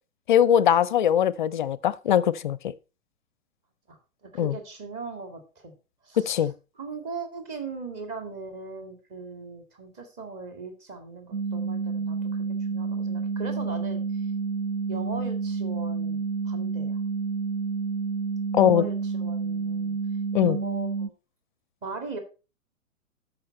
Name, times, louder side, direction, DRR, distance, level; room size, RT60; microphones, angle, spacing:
voice 1, 0.3-2.7 4.4-4.6 6.2-6.5 18.5-18.9 20.3-20.6, left 10 dB, 40° left, 0.4 m, -21 dB
voice 2, 3.9-5.7 6.0-6.5 6.8-14.3 14.9-17.0 18.6-20.0 20.4-21.1 21.8-22.2, right 4 dB, 25° right, 2.2 m, -39 dB
sound 1, 11.3-21.1, right 5 dB, 70° right, 0.7 m, -29 dB
13.0 x 5.8 x 4.3 m
figure-of-eight pair, 115°, 41 cm